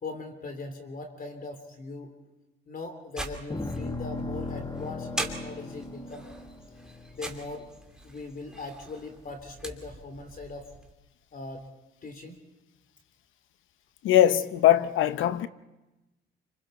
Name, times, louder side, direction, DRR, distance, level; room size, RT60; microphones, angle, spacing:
voice 1, 0.0-2.1 2.7-6.3 7.1-7.7 8.0-10.7 11.3-11.7 12.0-12.4, left 3 dB, 45° left, 3.5 m, -40 dB
sound 1, 3.2-10.9, right 1 dB, 5° right, 2.8 m, -42 dB
sound 2, 3.5-7.9, left 2 dB, 20° left, 1.4 m, -37 dB
voice 2, 14.0-15.5, left 12 dB, 85° left, 0.9 m, -21 dB
28.0 x 26.0 x 4.3 m
cardioid pair, 90°, 20 cm